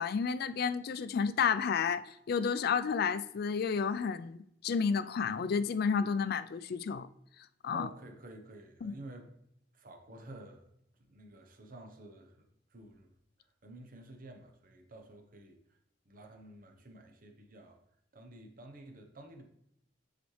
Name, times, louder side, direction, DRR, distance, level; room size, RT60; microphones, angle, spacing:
voice 1, 0.0-7.1 7.6-7.9 8.8-9.0, left 6 dB, 60° left, 0.4 m, -31 dB
voice 2, 7.7-9.3 9.7-10.7 11.0-12.5 12.7-13.1 13.4-15.8 16.1-17.8 18.1-19.4, right 1 dB, 50° right, 0.9 m, -51 dB
9.2 x 4.1 x 3.2 m
head